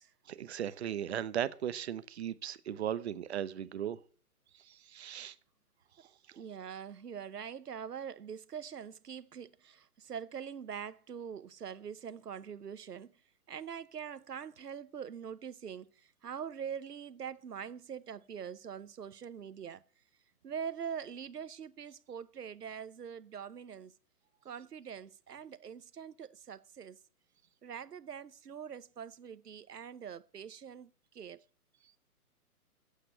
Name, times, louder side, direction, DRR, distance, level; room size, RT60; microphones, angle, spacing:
voice 1, 0.3-4.0 4.5-5.3 6.3-6.4, right 10 dB, 45° right, 0.7 m, -37 dB
voice 2, 6.4-13.2 13.5-19.8 20.4-23.9 24.4-27.0 27.6-31.4, right 7 dB, 85° right, 0.8 m, -43 dB
8.4 x 7.7 x 8.1 m
figure-of-eight pair, 135°, 46 cm